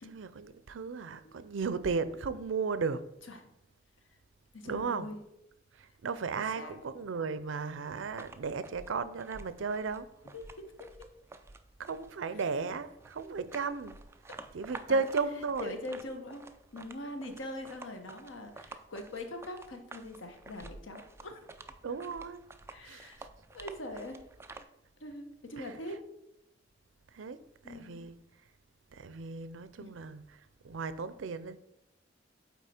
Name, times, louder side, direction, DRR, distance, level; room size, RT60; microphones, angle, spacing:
voice 1, 0.1-3.0 4.7-5.1 5.7-10.1 11.8-14.0 14.5-15.8 17.3-17.4 21.8-22.4 22.8-23.3 25.6-25.7 27.1-28.2 28.9-31.6, right 4 dB, 90° right, 0.5 m, -35 dB
voice 2, 4.5-5.2 6.3-6.8 10.3-11.1 14.9-15.0 15.6-16.5 16.7-21.4 22.7-23.3 23.5-24.3 24.5-24.6 25.0-26.0 27.6-28.1 29.8-29.9, left 1 dB, 90° left, 1.1 m, -42 dB
Sandal Walking, 8.0-24.6, right 3 dB, 15° right, 0.4 m, -51 dB
8.1 x 4.3 x 4.3 m
head